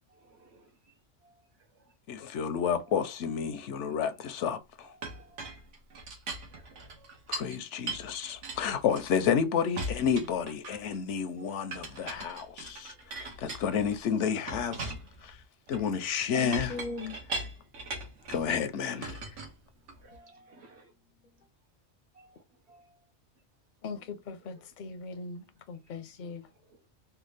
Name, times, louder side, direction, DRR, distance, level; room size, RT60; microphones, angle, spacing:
voice 1, 0.1-2.0 2.9-3.9 4.8-5.4 6.5-7.3 7.7-8.1 11.4-12.3 12.6-13.3 15.8-16.4 18.8-19.2 19.9-20.9 22.1-23.0 25.0-25.2 26.5-26.8, right 2 dB, 65° right, 1.1 m, -60 dB
voice 2, 2.1-4.9 7.3-14.9 15.2-15.4 15.7-16.7 18.3-19.2, left 7 dB, 80° left, 0.9 m, -30 dB
Chink clink, 5.0-7.6 7.9-9.4 9.8-11.0 11.7-14.0 14.5-18.5 19.0-20.2, right 2 dB, 80° right, 1.3 m, -40 dB
voice 3, 16.3-17.2 20.1-20.2 23.8-26.5, left 4 dB, 50° left, 0.6 m, -39 dB
3.5 x 2.3 x 3.2 m
omnidirectional pair, 1.2 m